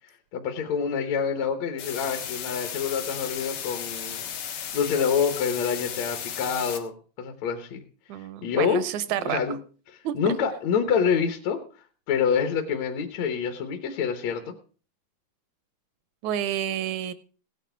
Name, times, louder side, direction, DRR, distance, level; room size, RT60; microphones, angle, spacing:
voice 1, 0.3-7.8 8.2-8.8 9.2-9.6 9.9-14.5, left 7 dB, 65° left, 5 dB, 2.2 m, -27 dB
sound 1, 1.8-6.8, left 8 dB, 90° left, 3.3 m, -35 dB
voice 2, 8.1-9.4 10.0-10.4 16.2-17.1, right 11 dB, 75° right, 14 dB, 1.9 m, -29 dB
17.0 x 9.4 x 4.4 m, 0.38 s
omnidirectional pair, 3.8 m